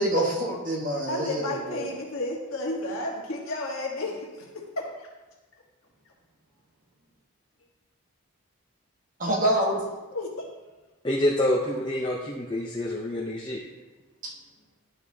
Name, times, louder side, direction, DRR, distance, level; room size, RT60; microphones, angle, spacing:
voice 1, 0.0-1.9 9.2-9.9 14.2-14.3, right 1 dB, 40° right, -2 dB, 1.3 m, -26 dB
voice 2, 1.1-4.9 10.1-10.3, left 2 dB, 70° left, -2 dB, 1.4 m, -32 dB
voice 3, 11.0-13.6, left 1 dB, 20° left, -3 dB, 0.6 m, -27 dB
10.5 x 4.8 x 2.8 m, 1.2 s
head